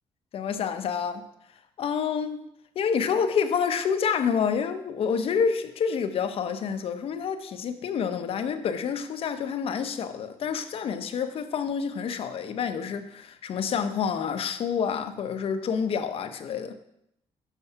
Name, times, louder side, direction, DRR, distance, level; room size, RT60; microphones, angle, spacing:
voice 1, 0.3-1.2 1.8-2.4 2.8-16.7, left 6 dB, 65° left, 0.7 m, -28 dB
7.3 x 4.5 x 5.6 m
cardioid pair, 115°, 11 cm